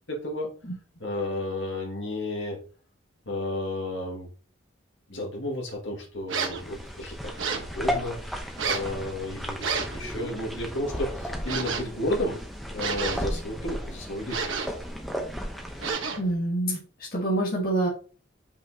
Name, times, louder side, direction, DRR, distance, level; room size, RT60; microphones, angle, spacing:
voice 1, 0.1-0.5 1.0-2.6 3.3-4.3 5.1-12.4 12.7-14.7, left 1 dB, 65° left, -1 dB, 2.0 m, -32 dB
sound 1, 6.3-6.7 7.4-7.7 8.6-8.9 9.6-10.0 11.5-11.9 12.8-13.4 14.3-14.8 15.8-16.3, right 5 dB, 70° right, 1.2 m, -30 dB
sound 2, 6.6-15.9, equal, ahead, 0.9 m, -35 dB
voice 2, 16.2-16.8 17.1-17.9, right 1 dB, 45° left, -4 dB, 1.7 m, -26 dB
6.0 x 5.6 x 2.9 m, 0.39 s
head